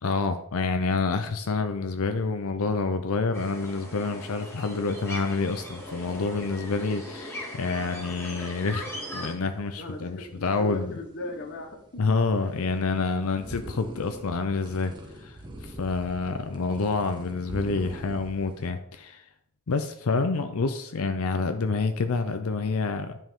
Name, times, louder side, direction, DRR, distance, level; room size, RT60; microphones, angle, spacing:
voice 1, 0.0-8.9 9.1-10.9 12.0-14.9 15.2-19.2 19.7-23.2, left 4 dB, 70° left, 8 dB, 0.6 m, -28 dB
sound 1, 3.3-9.3, left 1 dB, 10° left, 1.9 m, -39 dB
sound 2, 5.5-18.7, right 1 dB, 20° right, 1.1 m, -45 dB
voice 2, 9.8-12.0 12.3-12.5, left 1 dB, 50° left, 4 dB, 1.2 m, -38 dB
9.9 x 5.4 x 3.7 m, 0.73 s
head